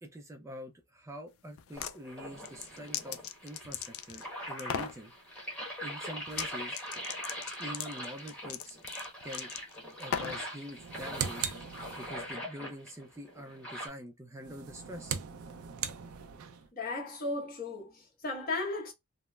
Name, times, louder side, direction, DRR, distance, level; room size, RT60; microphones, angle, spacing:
voice 1, 0.0-5.1 5.8-6.8 7.6-8.8 9.2-9.5 10.0-11.5 11.9-15.2, equal, 15° right, 0.4 m, -45 dB
sound 1, 1.6-2.0 2.4-4.3 4.6-5.0 6.3-6.5 6.7-10.5, left 8 dB, 65° left, 0.3 m, -38 dB
sound 2, 1.7-13.9, equal, 5° left, 1.1 m, -42 dB
sound 3, 10.7-12.4 14.4-16.7, right 8 dB, 85° right, 0.4 m, -39 dB
voice 2, 16.7-18.9, left 2 dB, 45° left, 1.0 m, -35 dB
3.1 x 2.0 x 2.2 m
head